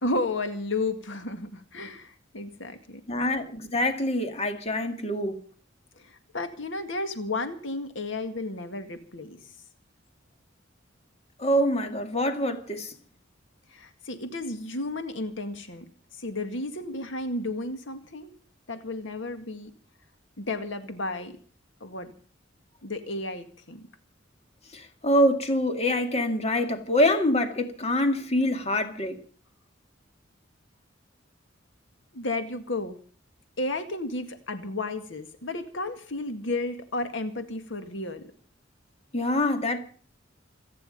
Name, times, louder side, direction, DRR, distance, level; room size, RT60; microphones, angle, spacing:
voice 1, 0.0-3.0 6.0-9.4 13.7-15.9 16.2-18.3 18.7-19.7 20.4-21.4 21.8-22.1 22.8-23.9 32.1-33.0 33.6-38.3, left 2 dB, 80° left, 2.0 m, -33 dB
voice 2, 3.1-5.4 11.4-12.9 24.7-29.2 39.1-39.8, left 1 dB, 35° left, 2.2 m, -25 dB
27.5 x 9.8 x 5.3 m
head